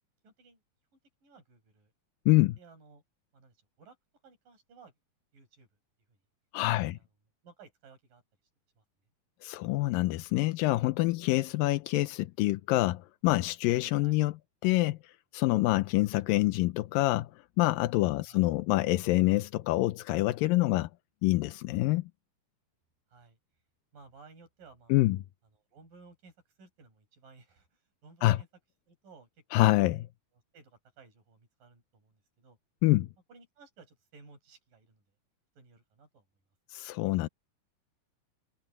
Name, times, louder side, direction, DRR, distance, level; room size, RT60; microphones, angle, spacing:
voice 1, 0.2-0.6 1.2-1.9 2.5-3.0 3.3-4.0 4.2-4.9 5.3-5.7 6.1-6.2 6.7-7.0 7.4-8.2 8.8-8.9 14.0-14.2 18.2-18.5 23.1-23.4 23.9-25.0 25.7-28.5 28.9-29.6 30.5-32.6 33.3-35.0 35.6-36.3, right 4 dB, 60° right, 8.2 m, -57 dB
voice 2, 2.3-2.6 6.5-7.0 9.4-14.4 14.6-17.3 17.6-20.9 21.2-22.0 24.9-25.2 28.2-28.4 29.5-30.1 32.8-33.1 36.7-37.3, left 18 dB, 75° left, 2.2 m, -26 dB
omnidirectional pair, 4.4 m